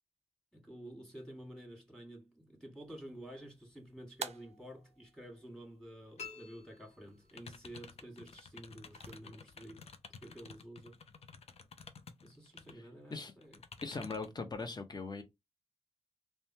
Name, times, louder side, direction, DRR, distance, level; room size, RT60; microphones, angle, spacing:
voice 1, 0.5-9.9 10.2-11.0 12.2-13.6, right 1 dB, 5° left, 1.5 m, -51 dB
sound 1, 2.8-9.1, right 6 dB, 70° right, 0.4 m, -52 dB
sound 2, 6.2-7.7, left 6 dB, 85° left, 0.8 m, -50 dB
sound 3, 7.3-12.7 13.1-14.4, left 5 dB, 65° left, 0.4 m, -52 dB
voice 2, 13.8-15.2, left 4 dB, 40° left, 0.7 m, -40 dB
3.0 x 2.2 x 2.7 m
cardioid pair, 55°, 11 cm